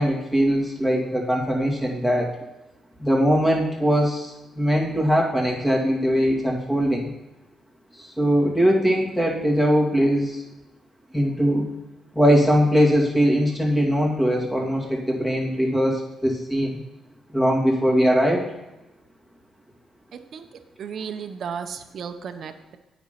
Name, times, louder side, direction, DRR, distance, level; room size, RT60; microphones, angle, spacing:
voice 1, 0.0-2.3 3.0-7.1 8.0-10.4 11.1-11.7 12.1-16.8 17.3-18.4, equal, 10° left, -1 dB, 2.3 m, -21 dB
voice 2, 20.1-20.5 20.8-22.8, right 7 dB, 60° right, 7 dB, 0.7 m, -34 dB
9.4 x 5.2 x 5.7 m, 1.0 s
cardioid pair, 90°, 0 cm